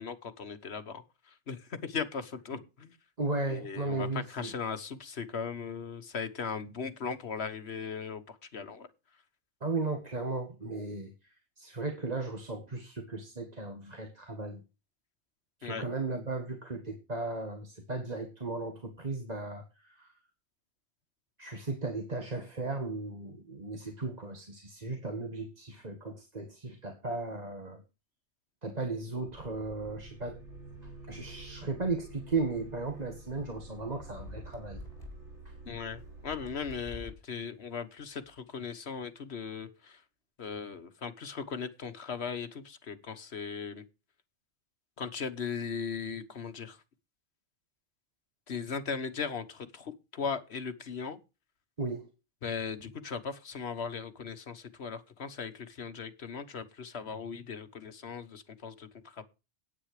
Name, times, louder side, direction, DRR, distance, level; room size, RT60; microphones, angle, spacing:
voice 1, 0.0-3.0 3.5-8.9 15.6-15.8 35.6-40.0 40.4-43.8 45.0-46.8 48.5-51.2 52.4-59.2, left 6 dB, 65° left, 9 dB, 1.5 m, -38 dB
voice 2, 3.2-4.5 9.6-11.1 11.6-14.6 15.6-20.1 21.4-27.8 28.6-30.4 31.1-34.8 35.5-35.6 51.8-52.1, right 3 dB, 35° right, 4 dB, 1.7 m, -36 dB
sound 1, 29.3-36.9, right 2 dB, 90° right, 3.9 m, -48 dB
sound 2, 33.0-33.2 33.9-35.2 36.0-37.3 38.0-38.4, left 3 dB, 35° left, 4.0 m, -47 dB
9.9 x 9.0 x 4.9 m, 0.29 s
omnidirectional pair, 1.2 m